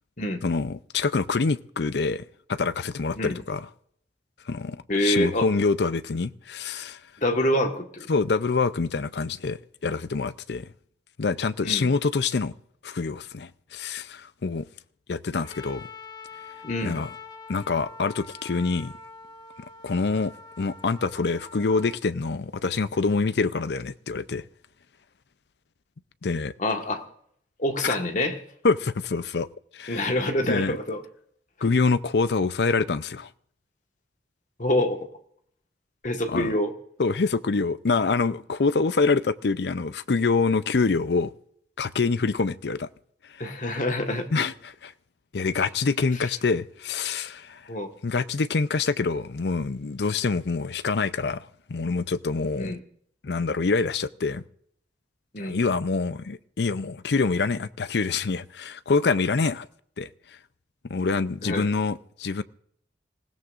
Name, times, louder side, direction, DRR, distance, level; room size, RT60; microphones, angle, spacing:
voice 1, 0.4-3.7 4.5-7.0 8.1-10.7 11.2-12.5 12.8-14.7 15.1-15.9 16.8-17.1 17.5-18.9 19.8-24.4 26.2-26.5 27.8-28.0 28.6-29.5 29.7-30.1 30.4-30.8 31.6-33.3 36.3-36.5 37.0-41.3 41.8-42.9 43.3-43.4 44.3-44.9 45.3-47.7 48.0-52.8 53.2-54.4 55.4-59.7 60.0-60.1 60.9-62.4, left 4 dB, 70° left, 0.6 m, -26 dB
voice 2, 4.9-5.5 7.2-8.1 11.6-11.9 16.6-17.0 26.6-27.1 27.6-28.4 29.9-31.0 34.6-35.1 36.0-36.7 43.4-44.3 47.7-47.9 52.6-52.8 55.3-55.6 61.4-61.7, left 1 dB, 45° left, 1.5 m, -26 dB
Trumpet, 15.4-22.0, left 4 dB, 25° left, 1.3 m, -45 dB
27.0 x 16.5 x 2.5 m
head